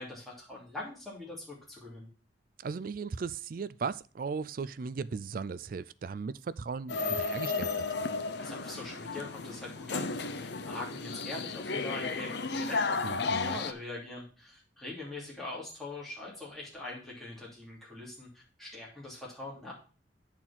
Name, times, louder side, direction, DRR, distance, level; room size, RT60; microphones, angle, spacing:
voice 1, 0.0-2.1 8.4-19.7, left 2 dB, ahead, 2.8 m, -43 dB
voice 2, 2.6-7.7 13.0-13.6, right 5 dB, 45° right, 0.3 m, -37 dB
sound 1, 6.9-13.7, left 4 dB, 60° left, 0.7 m, -33 dB
8.9 x 4.4 x 5.8 m
head